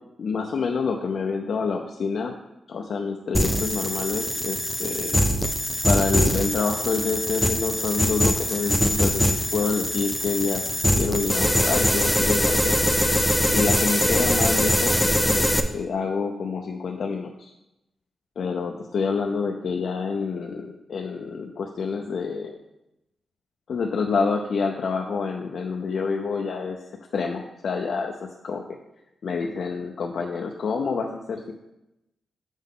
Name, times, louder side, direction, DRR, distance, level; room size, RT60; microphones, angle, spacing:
voice 1, 0.2-2.4 2.7-5.2 5.8-10.6 11.0-12.8 13.5-15.0 15.3-17.5 18.4-22.5 23.7-26.8 27.1-28.6 29.2-31.5, left 5 dB, 65° left, 2 dB, 0.5 m, -27 dB
sound 1, 3.3-15.6, equal, 5° left, 0.5 m, -23 dB
7.0 x 5.6 x 3.7 m, 0.92 s
wide cardioid pair, 105°, 0 cm